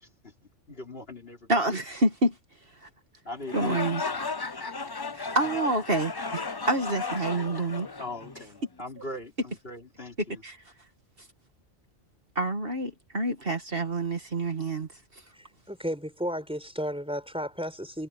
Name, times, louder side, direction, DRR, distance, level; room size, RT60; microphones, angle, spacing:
voice 1, 0.0-0.3 0.7-1.6 3.3-4.3 8.0-10.4, left 2 dB, 55° left, 3.5 m, -41 dB
voice 2, 1.5-2.4 2.7-2.9 3.5-4.0 5.1-7.9 10.2-10.7 11.2-11.3 12.4-15.2, right 2 dB, 50° right, 2.2 m, -28 dB
sound 1, 3.4-8.6, left 4 dB, 25° left, 0.6 m, -34 dB
voice 3, 15.3-18.1, equal, 5° right, 4.7 m, -33 dB
omnidirectional pair, 1.2 m